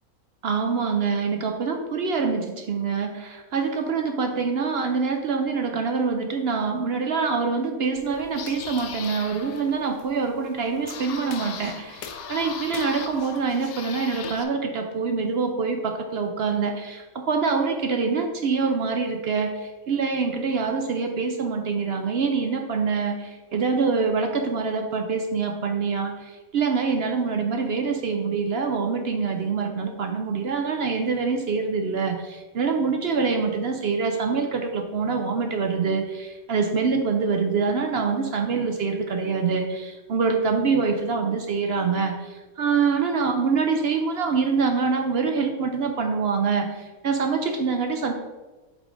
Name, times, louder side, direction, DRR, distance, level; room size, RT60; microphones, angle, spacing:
voice 1, 0.4-48.1, right 5 dB, 60° right, 4 dB, 0.6 m, -25 dB
sound 1, 8.0-14.4, left 7 dB, 85° left, 1.1 m, -38 dB
8.0 x 3.7 x 3.8 m, 1.2 s
omnidirectional pair, 1.5 m